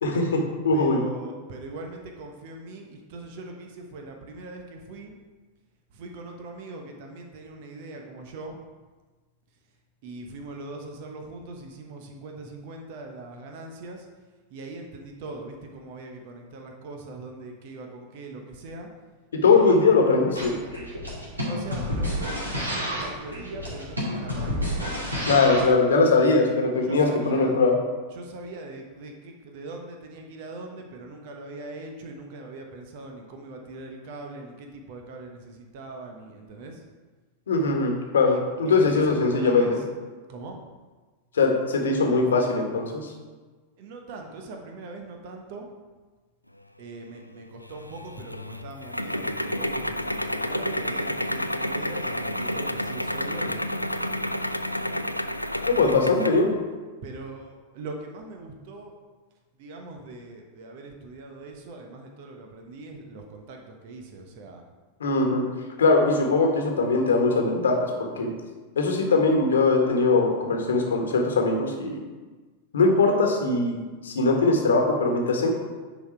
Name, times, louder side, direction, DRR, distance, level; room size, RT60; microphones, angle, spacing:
voice 1, 0.0-1.0 19.3-20.6 25.3-27.8 37.5-39.8 41.3-43.1 55.7-56.5 65.0-65.4 65.8-68.3 68.7-72.0 72.7-75.5, left 3 dB, 65° left, 2 dB, 1.4 m, -21 dB
voice 2, 0.7-5.1 6.0-8.6 10.0-14.0 14.5-18.9 19.4-19.8 21.5-24.9 25.9-26.3 26.8-27.6 28.1-36.7 38.2-39.9 40.3-40.6 43.8-45.7 46.8-53.7 55.7-56.4 57.0-58.9 59.6-64.6, right 2 dB, 50° right, 3 dB, 1.1 m, -41 dB
sound 1, 20.3-25.7, equal, 80° right, 2.1 m, -30 dB
sound 2, 47.7-56.5, left 1 dB, 90° left, 0.3 m, -30 dB
10.0 x 4.2 x 4.5 m, 1.3 s
figure-of-eight pair, 90°, 0 cm